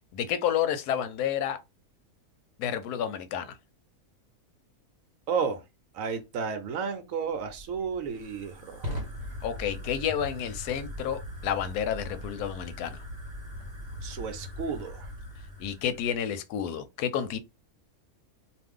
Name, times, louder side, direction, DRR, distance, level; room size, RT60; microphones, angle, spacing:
voice 1, 0.1-1.6 2.6-3.5 9.4-13.0 15.6-17.4, left 9 dB, 90° left, 1.1 m, -30 dB
voice 2, 5.3-5.6 5.9-8.9 14.0-15.1, right 6 dB, 70° right, 0.9 m, -32 dB
Fire, 7.3-16.2, left 1 dB, 30° right, 0.9 m, -40 dB
2.5 x 2.4 x 3.5 m
omnidirectional pair, 1.6 m